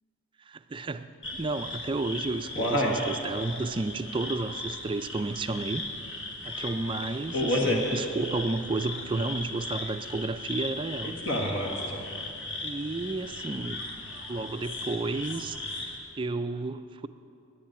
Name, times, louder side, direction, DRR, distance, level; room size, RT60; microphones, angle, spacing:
voice 1, 0.5-5.8 6.4-11.2 12.6-13.8 14.3-15.6 16.2-17.1, right 3 dB, 25° right, 10 dB, 0.3 m, -32 dB
sound 1, 1.2-16.0, left 1 dB, 55° left, 1.6 m, -33 dB
10.5 x 10.0 x 9.0 m, 2.6 s
head